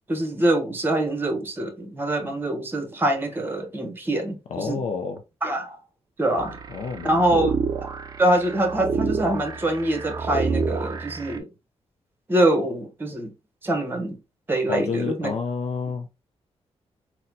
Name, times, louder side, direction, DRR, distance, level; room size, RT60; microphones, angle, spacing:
voice 1, 0.1-4.8 5.4-5.8 6.2-6.5 7.0-7.6 8.2-11.5 12.3-13.3 13.6-14.2 14.5-15.3, right 1 dB, 20° right, 0.9 m, -24 dB
voice 2, 4.5-5.2 6.7-7.5 14.7-16.1, left 5 dB, 70° left, 0.4 m, -29 dB
sound 1, 6.4-11.4, right 5 dB, 35° right, 0.4 m, -29 dB
4.1 x 2.1 x 2.6 m
wide cardioid pair, 125°, 11 cm